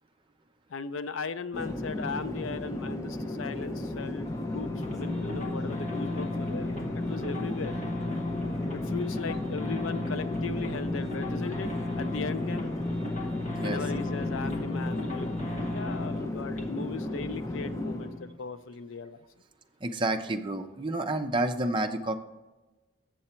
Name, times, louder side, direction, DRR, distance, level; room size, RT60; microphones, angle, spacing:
voice 1, 0.7-7.8 8.7-12.7 13.6-15.3 15.7-19.2, left 4 dB, 85° left, 12 dB, 0.5 m, -38 dB
Conversation / Chatter / Fixed-wing aircraft airplane, 1.5-18.2, left 1 dB, 15° left, 0.6 m, -35 dB
sound 1, 4.2-18.4, left 2 dB, 35° left, 1.2 m, -35 dB
voice 2, 19.8-22.2, right 2 dB, 25° right, 5 dB, 0.5 m, -29 dB
7.6 x 7.0 x 4.3 m, 1.1 s
head